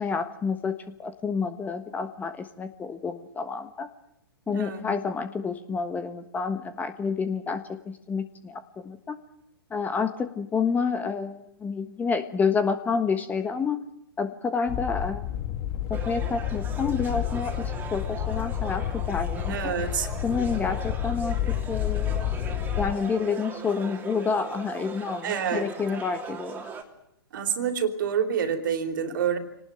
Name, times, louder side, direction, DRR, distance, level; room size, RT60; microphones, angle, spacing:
voice 1, 0.0-3.9 4.5-9.2 9.7-13.8 14.2-15.3 15.9-19.7 20.2-22.3 22.8-26.7, left 5 dB, 15° left, 11 dB, 1.3 m, -29 dB
voice 2, 4.5-4.9 19.5-20.1 25.2-25.7 27.3-29.4, right 7 dB, 55° right, 8 dB, 3.3 m, -27 dB
sound 1, 14.7-22.9, left 11 dB, 35° left, 1.3 m, -30 dB
sound 2, 15.9-26.8, right 6 dB, 15° right, 3.0 m, -40 dB
26.0 x 19.0 x 9.1 m, 0.81 s
figure-of-eight pair, 115°, 13 cm